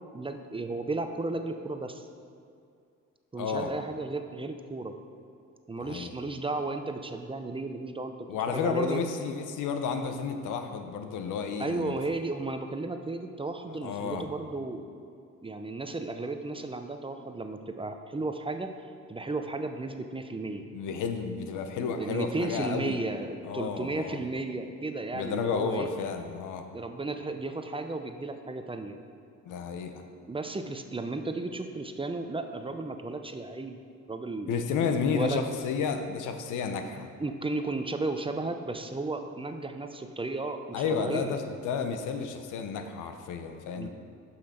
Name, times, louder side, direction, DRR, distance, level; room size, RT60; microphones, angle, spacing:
voice 1, 0.1-2.1 3.3-4.9 5.7-9.0 11.6-14.8 15.4-18.7 19.1-20.7 21.8-25.9 26.7-29.0 30.3-33.8 34.1-35.4 37.2-41.3 43.7-43.9, right 2 dB, 20° right, 6 dB, 0.6 m, -34 dB
voice 2, 3.4-3.7 5.8-6.1 8.3-11.9 13.7-14.3 20.7-23.0 23.4-24.2 25.1-26.6 29.5-29.9 34.5-37.1 40.7-43.9, left 6 dB, 85° left, 6 dB, 0.9 m, -31 dB
11.5 x 5.8 x 4.4 m, 2.4 s
cardioid pair, 90°, 30 cm